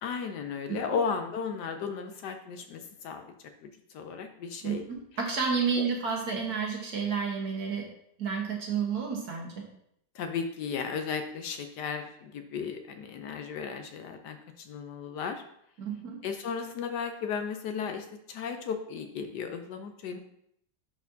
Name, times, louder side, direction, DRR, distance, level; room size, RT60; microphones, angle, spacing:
voice 1, 0.0-3.2 3.6-3.7 3.9-4.8 10.1-15.4 16.2-20.2, left 6 dB, 70° left, 6 dB, 1.1 m, -35 dB
voice 2, 4.6-7.9 8.2-9.7 15.8-16.2, right 6 dB, 60° right, 0 dB, 1.6 m, -31 dB
10.0 x 4.2 x 2.7 m, 0.73 s
omnidirectional pair, 2.0 m